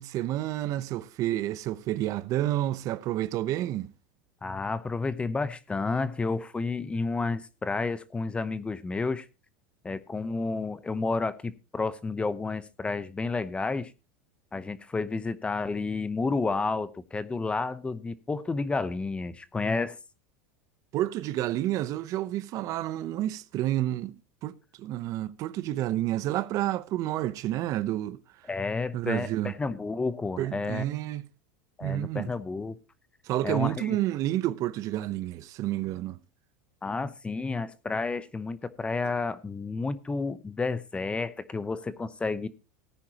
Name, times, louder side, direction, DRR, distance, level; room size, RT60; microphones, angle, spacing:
voice 1, 0.0-3.9 20.9-28.2 28.9-29.5 30.4-31.2 31.8-32.3 33.2-36.2, right 14 dB, 45° right, 0.8 m, -30 dB
voice 2, 4.4-9.3 9.8-13.9 14.5-20.0 28.5-30.9 31.8-32.8 33.4-34.0 36.8-42.5, left 3 dB, 15° left, 0.9 m, -31 dB
18.0 x 9.8 x 2.9 m
supercardioid pair, 120°, 8 cm